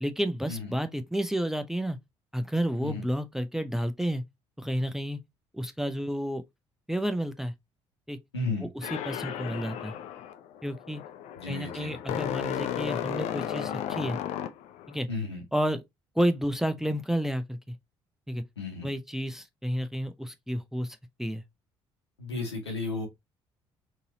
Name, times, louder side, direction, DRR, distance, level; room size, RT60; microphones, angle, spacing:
voice 1, 0.0-2.0 2.3-4.2 4.6-5.2 5.5-6.4 6.9-7.5 8.1-8.2 8.6-9.9 10.6-11.0 11.5-14.2 14.9-15.1 15.5-15.8 16.2-17.7 18.3-18.4 18.8-21.4, equal, 5° right, 0.5 m, -31 dB
voice 2, 8.3-8.7 11.4-12.0 15.1-15.4 18.6-18.9 22.2-23.1, left 3 dB, 85° left, 1.1 m, -33 dB
sound 1, 8.8-15.0, left 10 dB, 55° left, 0.5 m, -34 dB
3.9 x 2.7 x 2.7 m
figure-of-eight pair, 50°, 14 cm